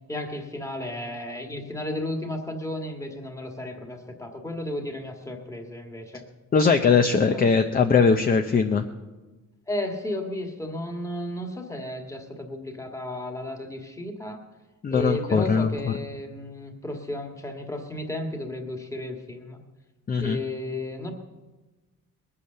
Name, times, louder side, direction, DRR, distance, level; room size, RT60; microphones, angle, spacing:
voice 1, 0.1-6.2 7.3-7.4 9.7-14.4 14.9-19.6 20.2-21.1, left 1 dB, 10° left, 3 dB, 1.6 m, -33 dB
voice 2, 6.5-8.8 14.8-15.9 20.1-20.4, left 5 dB, 30° left, 6 dB, 0.6 m, -20 dB
20.5 x 8.5 x 6.7 m, 1.2 s
cardioid pair, 160°, 31 cm